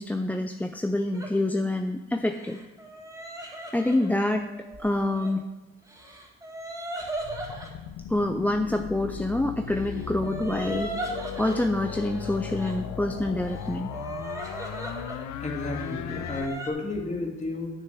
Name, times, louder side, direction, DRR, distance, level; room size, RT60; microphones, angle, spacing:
voice 1, 0.0-2.6 3.7-4.5 4.8-5.4 8.1-10.9 11.4-13.9, left 1 dB, 5° left, 5 dB, 0.4 m, -26 dB
sound 1, 1.1-1.3 2.2-5.3 5.9-7.7 9.7-12.8 13.4-15.3 15.6-16.7, right 1 dB, 10° right, 1.8 m, -38 dB
sound 2, 7.2-16.5, left 9 dB, 75° left, 0.7 m, -37 dB
voice 2, 15.4-17.7, left 2 dB, 25° left, 0 dB, 2.2 m, -32 dB
7.5 x 6.6 x 6.9 m, 1.2 s
cardioid pair, 90°, 30 cm